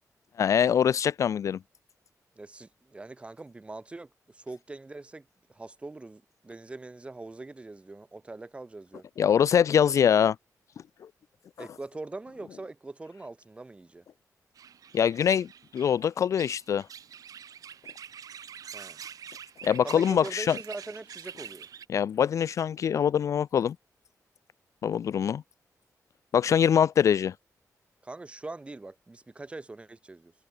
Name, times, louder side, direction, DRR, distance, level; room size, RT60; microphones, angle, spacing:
voice 1, 0.4-1.6 9.2-10.4 14.9-15.5 15.7-16.9 19.6-20.6 21.9-23.8 24.8-25.4 26.3-27.3, left 8 dB, 55° left, 0.3 m, -23 dB
voice 2, 2.4-9.0 11.6-14.0 18.7-19.0 19.8-21.7 28.0-30.3, right 2 dB, 20° right, 3.1 m, -42 dB
sound 1, 14.6-21.9, right 8 dB, 70° right, 6.8 m, -45 dB
wide cardioid pair, 160°, 6 cm